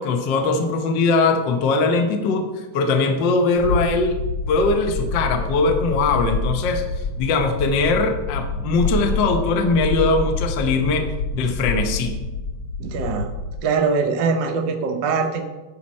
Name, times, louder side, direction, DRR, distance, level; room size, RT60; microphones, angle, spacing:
voice 1, 0.0-4.2 4.5-6.8 7.2-12.2, left 3 dB, 85° left, 4 dB, 1.0 m, -21 dB
sound 1, 3.6-13.6, left 3 dB, 70° left, 1.9 m, -27 dB
voice 2, 12.8-13.3 13.6-15.5, right 5 dB, 85° right, 4 dB, 1.0 m, -22 dB
10.5 x 4.3 x 6.3 m, 1.1 s
omnidirectional pair, 3.5 m